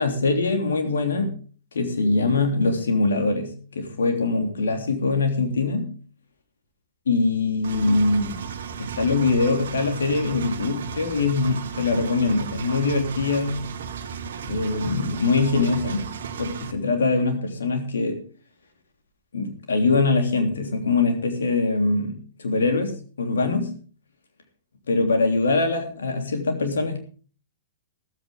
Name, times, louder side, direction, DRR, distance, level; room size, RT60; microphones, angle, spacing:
voice 1, 0.0-1.3 1.7-5.9 7.1-8.4 8.8-13.7 14.4-16.0 16.4-18.2 19.3-22.1 22.4-23.7 24.9-27.0, left 3 dB, 65° left, 4 dB, 3.2 m, -23 dB
Engine, 7.6-16.7, right 7 dB, 60° right, 1.4 m, -35 dB
14.5 x 14.0 x 3.7 m, 0.40 s
figure-of-eight pair, 105°, 0 cm